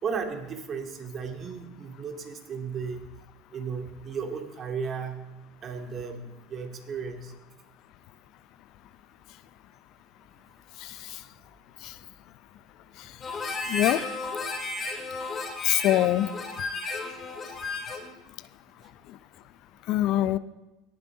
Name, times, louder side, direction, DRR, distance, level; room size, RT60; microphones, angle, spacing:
voice 1, 0.0-3.1 3.5-5.2 5.6-7.3, right 5 dB, 40° right, 3 dB, 2.2 m, -35 dB
Harmonica, 13.2-18.1, left 3 dB, 35° left, 2.8 m, -33 dB
voice 2, 13.7-14.0 15.6-16.3 19.9-20.4, left 14 dB, 60° left, 16 dB, 0.5 m, -23 dB
18.5 x 7.0 x 3.8 m, 1.0 s
hypercardioid pair, 80°, 0 cm